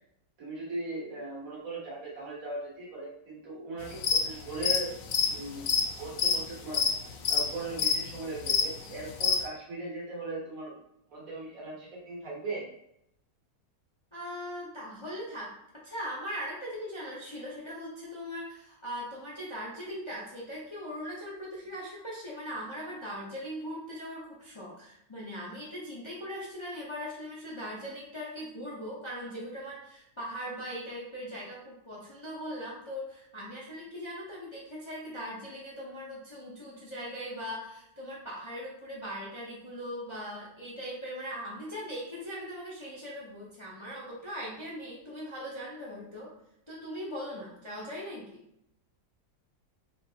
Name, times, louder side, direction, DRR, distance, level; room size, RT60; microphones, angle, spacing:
voice 1, 0.4-4.9 5.2-5.7 6.0-6.8 7.3-10.8 11.1-12.6, right 2 dB, 65° right, -5 dB, 1.7 m, -38 dB
sound 1, 3.8-4.2 4.5-9.4, left 6 dB, 70° left, 0.9 m, -26 dB
voice 2, 14.1-15.5 15.8-46.3 46.7-48.4, equal, 25° left, -6 dB, 0.7 m, -40 dB
4.4 x 3.2 x 2.8 m, 0.78 s
omnidirectional pair, 1.6 m